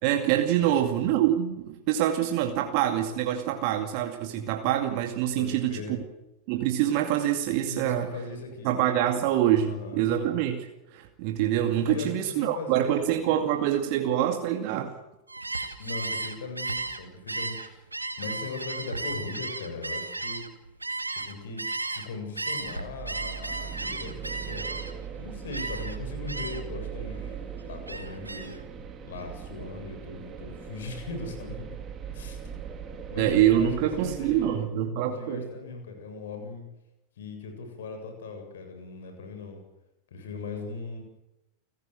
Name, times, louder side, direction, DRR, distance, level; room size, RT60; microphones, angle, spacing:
voice 1, 0.0-6.0 6.5-8.1 8.6-14.9 33.2-35.5, right 11 dB, 45° right, 5 dB, 2.3 m, -25 dB
voice 2, 5.4-6.0 7.7-8.7 9.6-10.0 11.9-12.1 12.4-13.6 15.8-17.8 18.2-20.4 21.1-24.6 25.2-27.4 27.7-28.6 29.0-31.6 32.1-32.4 33.1-34.6 35.1-36.7 37.2-39.6 40.1-41.0, left 4 dB, 60° left, 5 dB, 7.5 m, -39 dB
Gull seagull, 15.3-22.1 22.4-25.1 25.5-26.0 26.3-26.8 27.1-28.6, right 3 dB, 80° right, 2.2 m, -34 dB
sound 1, 22.6-34.5, right 8 dB, 25° right, 3.4 m, -39 dB
29.5 x 16.0 x 7.9 m, 0.93 s
figure-of-eight pair, 90°, 0 cm